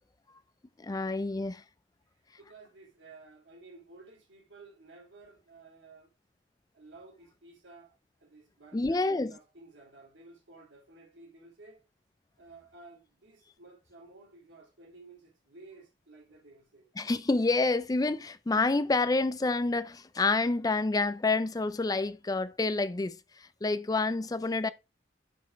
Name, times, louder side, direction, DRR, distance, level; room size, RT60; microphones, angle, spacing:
voice 1, 0.8-1.6 8.7-9.3 17.0-24.7, left 3 dB, 20° left, 0.4 m, -28 dB
voice 2, 2.4-6.1 6.7-7.9 8.2-11.8 12.4-16.9, right 3 dB, 70° right, 2.3 m, -54 dB
5.9 x 5.2 x 4.5 m
head